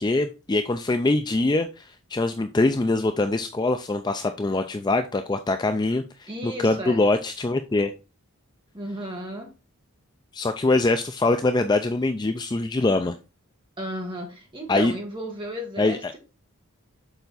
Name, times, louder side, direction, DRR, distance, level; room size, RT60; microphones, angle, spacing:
voice 1, 0.0-7.9 10.3-13.1 14.7-14.9 15.8-16.1, left 2 dB, 20° left, 8 dB, 0.3 m, -23 dB
voice 2, 6.3-7.0 8.7-9.5 13.8-16.2, right 1 dB, 20° right, 1 dB, 1.7 m, -34 dB
6.9 x 4.5 x 3.9 m, 0.29 s
head